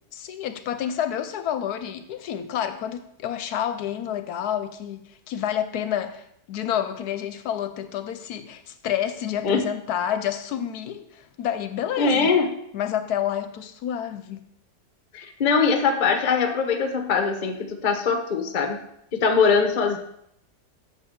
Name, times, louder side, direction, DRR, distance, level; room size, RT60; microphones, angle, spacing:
voice 1, 0.1-12.4 12.7-14.5, left 10 dB, 75° left, 10 dB, 1.0 m, -29 dB
voice 2, 12.0-12.5 15.1-18.8 19.1-20.0, left 5 dB, 40° left, 6 dB, 0.6 m, -22 dB
8.2 x 6.9 x 3.6 m, 0.74 s
omnidirectional pair, 1.8 m